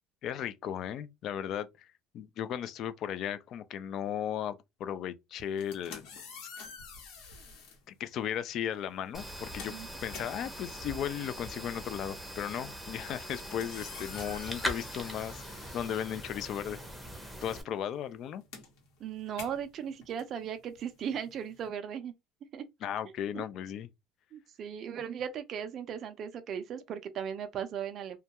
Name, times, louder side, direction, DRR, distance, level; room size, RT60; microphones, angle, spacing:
voice 1, 0.2-1.9 2.1-6.0 7.9-9.7 10.0-15.4 15.7-16.8 17.4-18.4 22.8-23.9, left 9 dB, 50° left, 0.3 m, -36 dB
sound 1, 5.4-7.8 8.7-8.9 9.2-16.7 17.0-21.7, left 5 dB, 75° left, 1.0 m, -49 dB
sound 2, 9.1-17.6, equal, ahead, 0.6 m, -41 dB
voice 2, 19.0-22.1 22.5-22.7 23.3-23.4 24.3-28.2, right 8 dB, 45° right, 0.4 m, -37 dB
2.2 x 2.2 x 2.7 m
cardioid pair, 135°, 0 cm